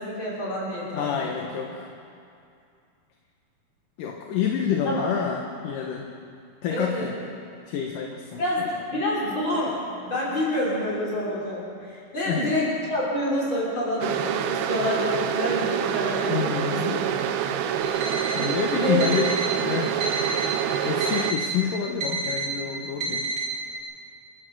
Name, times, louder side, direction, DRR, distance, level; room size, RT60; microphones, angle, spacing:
voice 1, 0.0-1.5 4.9-5.1 6.7-7.1 8.4-16.9 18.1-18.5 18.8-19.0, left 1 dB, 30° left, -6 dB, 7.0 m, -28 dB
voice 2, 0.9-1.9 4.0-6.1 6.6-7.1 7.7-8.4 12.2-12.6 16.3-16.9 18.4-19.3 19.6-20.0 20.8-23.2, left 7 dB, 70° left, 2 dB, 2.7 m, -28 dB
sound 1, 14.0-21.3, right 9 dB, 85° right, 2.8 m, -26 dB
Alarm, 17.8-18.5 19.0-19.5 20.0-20.5 21.0-21.5 22.0-22.5 23.0-23.5, right 3 dB, 60° right, 4.2 m, -29 dB
28.0 x 13.0 x 7.8 m, 2.5 s
omnidirectional pair, 4.3 m